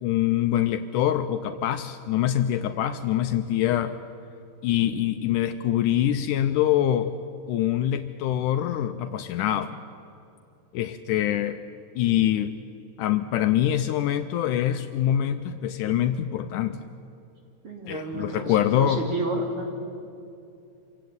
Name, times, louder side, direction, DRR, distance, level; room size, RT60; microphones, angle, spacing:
voice 1, 0.0-4.0 4.6-7.1 7.5-9.8 10.7-11.6 12.0-12.5 13.0-16.8 17.9-19.0, left 11 dB, 75° left, 9 dB, 2.0 m, -24 dB
voice 2, 17.6-19.7, right 1 dB, 40° right, 1 dB, 3.4 m, -31 dB
26.0 x 16.0 x 9.5 m, 2.6 s
omnidirectional pair, 4.0 m